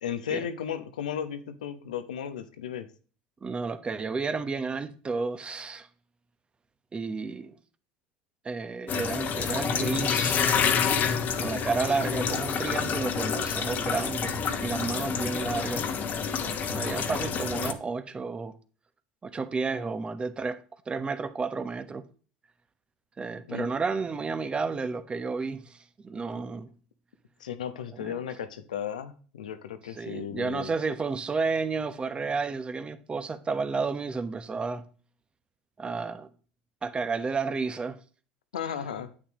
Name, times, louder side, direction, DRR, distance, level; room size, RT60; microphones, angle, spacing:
voice 1, 0.0-2.9 23.5-23.7 27.4-30.7 38.5-39.1, left 8 dB, 90° left, 1.0 m, -35 dB
voice 2, 3.4-5.9 6.9-7.5 8.4-10.5 11.4-15.8 16.4-18.5 19.2-20.6 20.9-22.0 23.2-26.7 28.0-28.1 29.9-34.8 35.8-36.3 36.8-38.0, right 4 dB, 25° right, 1.1 m, -31 dB
sound 1, 8.9-17.7, left 6 dB, 45° left, 1.3 m, -28 dB
9.9 x 8.4 x 3.1 m
hypercardioid pair, 80°, 4 cm